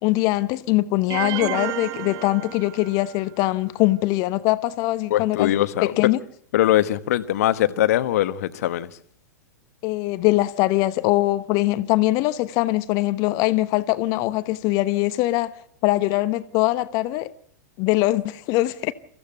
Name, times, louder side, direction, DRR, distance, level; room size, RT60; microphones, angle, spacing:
voice 1, 0.0-5.5 5.8-6.2 9.8-15.5 15.8-17.3 17.8-18.9, left 18 dB, 40° left, 1.0 m, -22 dB
sound 1, 1.1-3.2, right 14 dB, 35° right, 1.1 m, -31 dB
voice 2, 5.1-6.0 6.5-8.9, left 13 dB, 55° left, 1.3 m, -21 dB
24.5 x 15.5 x 7.9 m
figure-of-eight pair, 100°, 10 cm